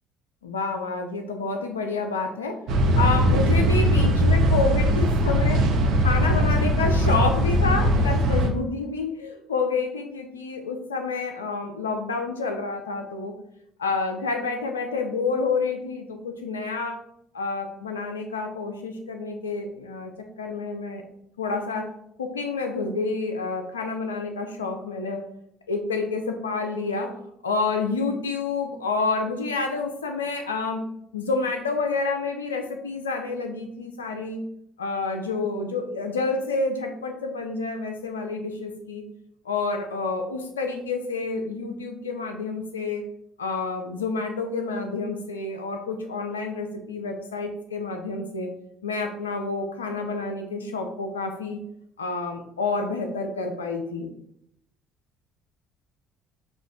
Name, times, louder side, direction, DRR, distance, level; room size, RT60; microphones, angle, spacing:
voice 1, 0.4-2.6 3.0-5.6 6.0-13.3 13.8-17.0 17.3-20.1 20.4-21.0 21.4-21.9 22.2-25.2 25.7-27.1 27.4-30.8 31.1-34.4 34.8-39.0 39.4-43.0 43.4-48.5 48.8-51.6 52.0-54.1, left 3 dB, 90° left, 5 dB, 0.4 m, -29 dB
sound 1, 2.7-8.5, equal, 65° right, 0.5 m, -20 dB
6.1 x 2.4 x 2.3 m, 0.74 s
hypercardioid pair, 55°, 0 cm